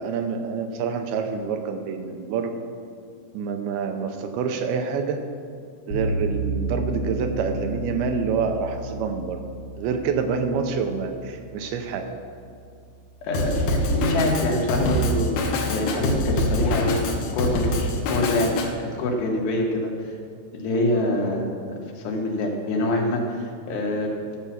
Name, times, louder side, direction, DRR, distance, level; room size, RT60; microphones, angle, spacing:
voice 1, 0.0-2.5 3.3-5.2 5.9-9.4 9.8-12.1, right 5 dB, 80° right, 6 dB, 2.6 m, -27 dB
sound 1, 5.9-13.0, right 2 dB, 55° left, 1.2 m, -32 dB
voice 2, 13.2-18.5 18.8-19.9 20.5-21.5 21.9-24.4, left 1 dB, 85° left, 0 dB, 3.6 m, -25 dB
Drum kit, 13.3-18.7, left 1 dB, 70° left, 2.8 m, -24 dB
13.5 x 6.0 x 7.3 m, 2.4 s
omnidirectional pair, 4.7 m